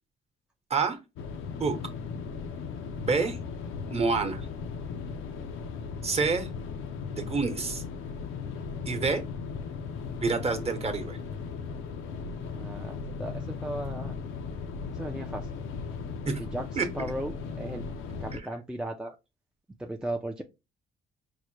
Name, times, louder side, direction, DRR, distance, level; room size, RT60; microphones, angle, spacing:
sound 1, 1.2-18.4, left 5 dB, 85° left, 0.5 m, -37 dB
voice 1, 3.0-3.4 3.9-4.5 6.0-6.5 7.1-7.8 8.9-9.2 10.2-11.2 16.3-16.4 16.8-16.9 18.3-18.4, right 4 dB, 30° right, 7 dB, 0.9 m, -27 dB
voice 2, 12.5-14.1 14.9-15.5 16.4-17.8 18.2-19.2 19.8-20.4, right 1 dB, 5° right, 3 dB, 0.4 m, -36 dB
4.7 x 2.1 x 3.1 m, 0.25 s
cardioid pair, 90°, 20 cm